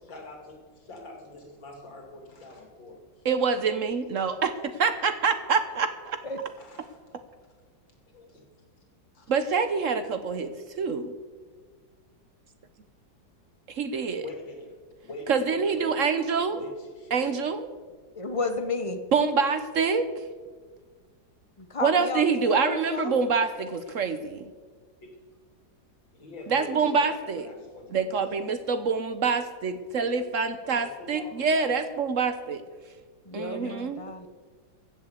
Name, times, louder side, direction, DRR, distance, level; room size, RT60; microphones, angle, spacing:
voice 1, 0.0-3.0 3.2-3.5 6.6-7.0 8.1-8.4 9.1-9.3 14.2-14.7 15.0-16.0 16.5-17.4 25.0-25.1 26.1-28.5 30.6-31.9 33.6-33.7, left 2 dB, 80° left, 2 dB, 3.5 m, -44 dB
voice 2, 3.2-4.5 4.8-6.2 9.3-11.1 13.7-14.3 15.3-16.6 17.1-17.7 19.1-20.1 21.8-24.5 26.5-27.5 27.9-32.6 33.3-34.0, right 5 dB, 55° right, 10 dB, 1.0 m, -26 dB
voice 3, 18.2-19.0 21.6-23.2 33.2-34.3, left 3 dB, 35° left, 8 dB, 0.5 m, -32 dB
15.5 x 7.3 x 8.2 m, 1.5 s
omnidirectional pair, 2.0 m